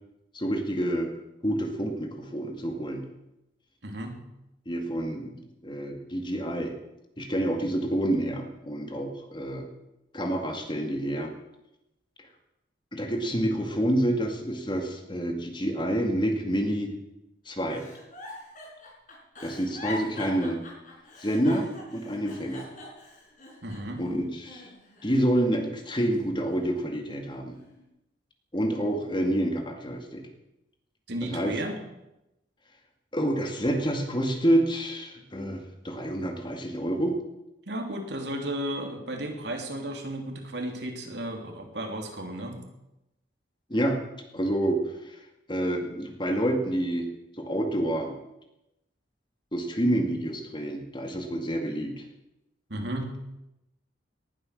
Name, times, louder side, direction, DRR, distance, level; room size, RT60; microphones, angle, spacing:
voice 1, 0.3-1.1 1.4-3.1 4.7-5.3 5.6-6.7 7.2-9.7 10.1-11.3 12.9-16.9 17.5-17.8 19.4-20.6 21.2-22.6 24.0-24.7 25.0-27.5 28.5-30.2 31.3-31.5 33.1-37.2 43.7-44.0 44.3-44.8 45.0-45.2 45.5-47.1 47.4-48.1 49.5-52.1, right 1 dB, 25° left, 4 dB, 2.1 m, -28 dB
voice 2, 3.8-4.2 23.6-24.0 31.1-31.8 37.7-42.6 52.7-53.1, right 1 dB, 60° right, 3 dB, 3.0 m, -34 dB
Giggle, 17.7-24.0 24.4-25.4 25.9-27.0 27.5-27.8, left 2 dB, 45° left, 5.7 m, -43 dB
19.0 x 11.5 x 6.6 m, 0.91 s
head